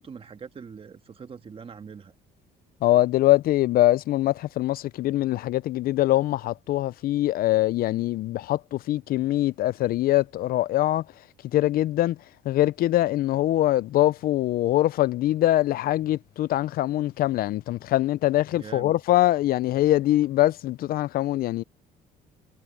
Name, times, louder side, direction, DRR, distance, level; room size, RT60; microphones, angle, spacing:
voice 1, 0.0-2.1 18.5-19.0, right 6 dB, 35° right, 1.8 m, -43 dB
voice 2, 2.8-11.0 11.5-12.2 12.5-21.6, left 15 dB, 60° left, 0.4 m, -23 dB
cardioid pair, 110°, 17 cm